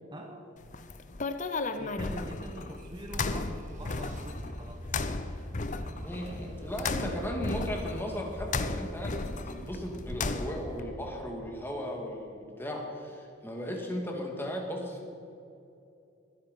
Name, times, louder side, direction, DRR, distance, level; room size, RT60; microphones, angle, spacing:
voice 1, 0.1-0.5 1.8-4.9 5.2-5.5 5.7-6.0, right 1 dB, 25° right, 3 dB, 1.0 m, -44 dB
sound 1, 0.6-10.8, left 3 dB, 40° left, 0.7 m, -35 dB
sound 2, 2.7-11.6, equal, 40° right, 1.5 m, -45 dB
voice 2, 6.0-9.1 9.5-15.2, equal, 10° left, 0 dB, 2.2 m, -36 dB
21.0 x 8.7 x 5.5 m, 2.7 s
head